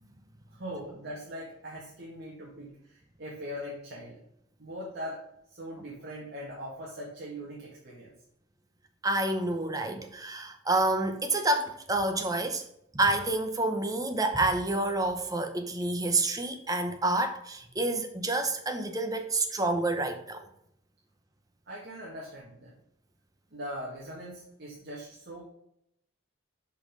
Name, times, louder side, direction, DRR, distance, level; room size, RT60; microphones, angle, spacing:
voice 1, 0.5-4.2 4.6-5.2 5.5-8.1 21.7-22.8 23.5-25.4, equal, 50° right, 1.6 m, -41 dB
voice 2, 9.0-12.6 12.9-20.5, right 2 dB, 15° right, 0.7 m, -28 dB
5.6 x 5.2 x 5.1 m
head